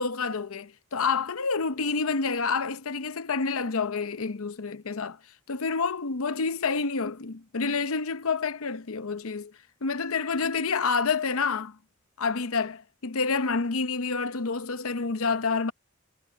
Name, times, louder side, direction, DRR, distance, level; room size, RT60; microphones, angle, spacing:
voice 1, 0.0-5.2 5.5-9.5 9.8-11.8 12.2-15.7, left 4 dB, 70° left, 0.8 m, -28 dB
head